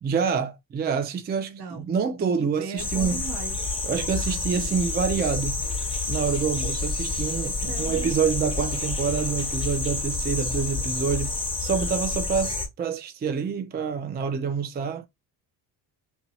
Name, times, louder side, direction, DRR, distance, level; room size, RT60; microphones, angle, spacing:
voice 1, 0.0-3.2 3.8-5.6 6.1-15.1, right 6 dB, 25° right, 0.4 m, -27 dB
voice 2, 1.5-3.6 7.4-8.1, right 4 dB, 65° right, 0.9 m, -39 dB
sound 1, 2.8-12.7, left 3 dB, 10° left, 1.0 m, -29 dB
2.7 x 2.3 x 2.6 m
supercardioid pair, 70°, 43 cm